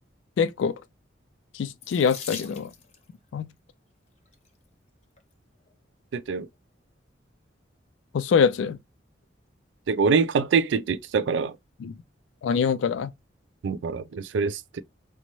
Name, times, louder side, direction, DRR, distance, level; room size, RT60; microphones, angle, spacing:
voice 1, 0.4-0.8 1.5-2.7 3.3-3.5 8.1-8.8 11.8-12.0 12.4-13.1, left 6 dB, 85° left, 0.3 m, -24 dB
Water tap faucet / Sink (filling or washing), 1.8-3.1 4.1-4.5 5.2-5.3 5.6-5.7, left 6 dB, 35° left, 0.7 m, -41 dB
voice 2, 6.1-6.5 9.9-11.6 13.6-14.8, right 5 dB, 75° right, 0.3 m, -24 dB
5.0 x 2.1 x 2.9 m
head